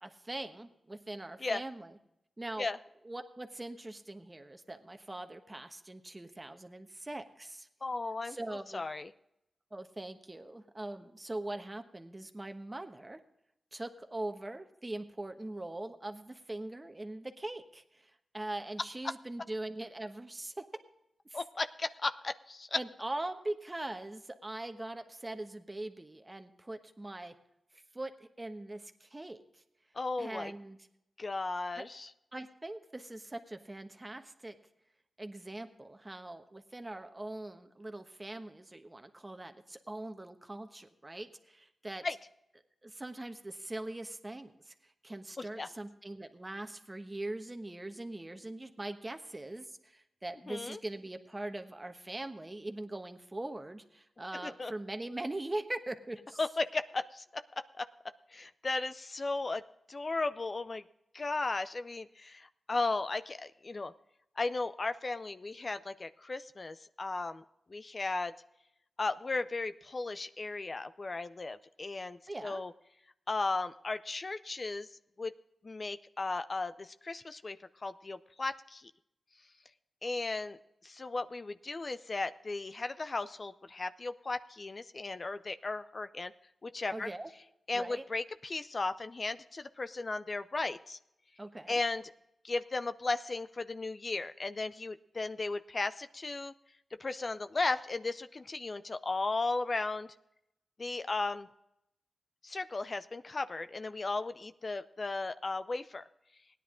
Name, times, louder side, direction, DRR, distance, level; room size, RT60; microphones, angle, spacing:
voice 1, 0.0-1.9 2.4-2.7 3.0-7.7 8.2-8.8 9.7-13.2 13.7-20.6 21.3-21.4 22.7-27.3 27.9-29.6 30.2-30.8 31.7-31.8 32.3-34.6 35.2-42.0 42.8-56.4 72.3-72.6 86.9-87.3 87.7-88.0 91.4-91.8, right 2 dB, 25° right, 7 dB, 1.1 m, -42 dB
voice 2, 7.8-8.4 8.7-9.1 21.3-22.8 29.9-30.5 31.2-32.1 42.0-42.2 45.4-45.7 50.5-50.8 54.4-54.7 56.4-57.4 57.8-57.9 58.3-59.6 59.9-60.8 61.1-63.9 64.4-67.4 67.7-68.3 69.0-72.7 73.3-74.9 75.2-75.3 75.6-78.9 80.0-80.6 80.8-86.3 86.6-87.1 87.7-91.0 91.7-92.1 92.4-96.5 96.9-100.1 100.8-101.5 102.4-106.0, left 3 dB, 45° left, 11 dB, 0.4 m, -35 dB
17.0 x 10.0 x 3.7 m, 0.83 s
cardioid pair, 60°, 0 cm